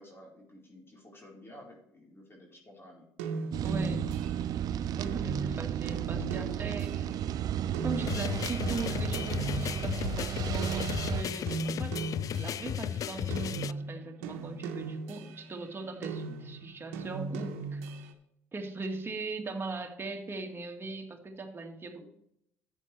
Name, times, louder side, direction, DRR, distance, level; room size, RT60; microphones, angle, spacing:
voice 1, 0.0-3.0 22.0-22.1, left 1 dB, 30° left, -1 dB, 4.3 m, -52 dB
sound 1, 3.2-10.3 10.6-12.9 13.3-15.6 16.0-18.1, right 3 dB, 80° right, 1.1 m, -38 dB
sound 2, 3.5-11.2, right 10 dB, 55° right, 0.4 m, -33 dB
voice 2, 3.6-4.1 4.8-7.2 7.8-12.0 12.3-17.8 18.5-22.0, right 3 dB, 30° right, 3 dB, 2.0 m, -39 dB
sound 3, 8.1-13.7, left 10 dB, 50° left, 0.3 m, -34 dB
10.5 x 9.3 x 3.3 m, 0.75 s
hypercardioid pair, 60°, 8 cm